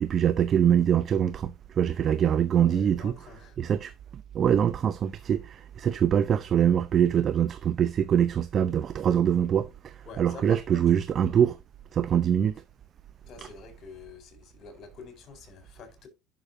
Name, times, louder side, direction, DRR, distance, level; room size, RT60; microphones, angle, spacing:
voice 1, 0.0-3.1 3.6-11.6 11.9-12.6 13.4-13.5, right 9 dB, 40° right, 0.7 m, -24 dB
voice 2, 2.5-3.6 10.1-10.8 13.3-16.1, left 5 dB, 50° left, 4.4 m, -46 dB
11.0 x 6.3 x 2.7 m
hypercardioid pair, 85°, 0 cm